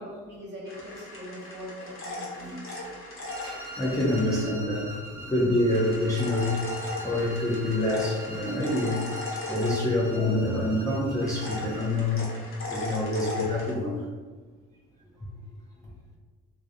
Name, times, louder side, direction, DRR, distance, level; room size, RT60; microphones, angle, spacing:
voice 1, 0.0-2.6, equal, 35° right, -4 dB, 1.0 m, -41 dB
sound 1, 0.7-4.4 5.7-10.3 11.2-13.7, left 2 dB, 40° left, 0.9 m, -38 dB
sound 2, 3.2-12.0, equal, 90° right, 0.6 m, -43 dB
voice 2, 3.4-9.0 9.5-12.3 12.7-14.0, left 1 dB, 10° left, -6 dB, 0.6 m, -27 dB
2.3 x 2.0 x 2.7 m, 1.4 s
hypercardioid pair, 55°, 32 cm